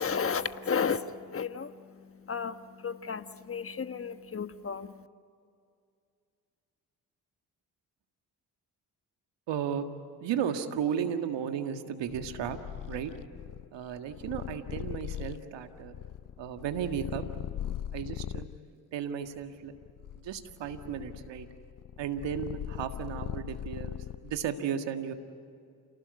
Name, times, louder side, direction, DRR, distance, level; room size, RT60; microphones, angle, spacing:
voice 1, 0.0-5.1, left 6 dB, 30° left, 11 dB, 1.3 m, -33 dB
voice 2, 9.5-9.8 10.2-12.6 12.9-13.1 13.7-16.0 16.4-17.2 17.9-18.5 18.9-19.7 20.2-21.5 22.0-25.1, right 8 dB, 75° right, 7 dB, 1.9 m, -34 dB
Purr, 12.1-18.6 19.3-24.5, left 11 dB, 50° left, 0.6 m, -40 dB
29.0 x 19.0 x 9.5 m, 2.3 s
hypercardioid pair, 45°, 44 cm